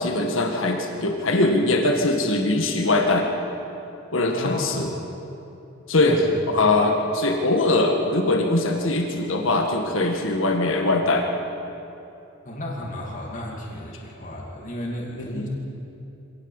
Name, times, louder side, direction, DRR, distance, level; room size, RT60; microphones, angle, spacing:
voice 1, 0.0-3.3 4.1-4.9 5.9-6.3 6.5-11.3 15.2-15.4, left 2 dB, 70° left, 3 dB, 1.9 m, -21 dB
voice 2, 4.3-4.8 6.0-6.4 12.4-15.5, left 1 dB, 40° left, -2 dB, 2.8 m, -33 dB
25.0 x 18.0 x 7.3 m, 2.8 s
head